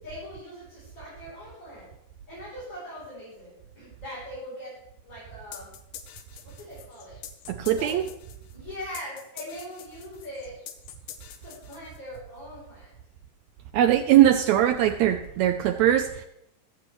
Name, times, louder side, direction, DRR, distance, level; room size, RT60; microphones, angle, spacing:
voice 1, 0.0-1.9 2.3-4.7 5.0-5.7 6.4-7.2 7.8-8.0 8.5-10.6 11.4-12.9, equal, 35° left, -9 dB, 4.3 m, -41 dB
sound 1, 5.5-12.2, left 10 dB, 80° left, 2.4 m, -45 dB
voice 2, 7.5-8.0 13.7-16.2, right 11 dB, 80° right, 8 dB, 1.6 m, -21 dB
18.0 x 7.7 x 3.1 m, 0.80 s
omnidirectional pair, 3.7 m